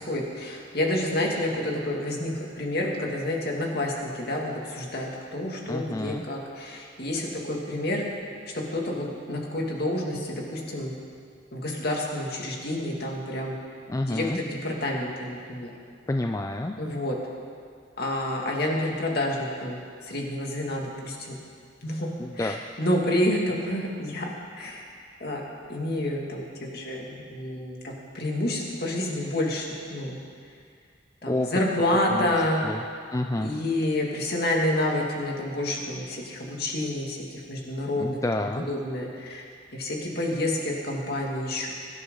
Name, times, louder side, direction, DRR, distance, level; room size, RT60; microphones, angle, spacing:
voice 1, 0.0-8.0 8.5-10.9 11.5-13.6 14.0-15.7 16.8-17.1 18.0-21.3 21.8-24.3 24.6-24.9 25.2-25.4 25.7-30.2 31.2-32.6 33.4-38.2 38.7-41.7, left 1 dB, 55° left, -1 dB, 2.4 m, -29 dB
voice 2, 5.7-6.2 13.9-14.4 16.1-16.8 22.2-22.6 31.3-31.5 32.1-32.8 33.1-33.5 38.0-38.7, left 2 dB, 15° left, 4 dB, 0.4 m, -29 dB
22.5 x 11.0 x 3.9 m, 2.2 s
head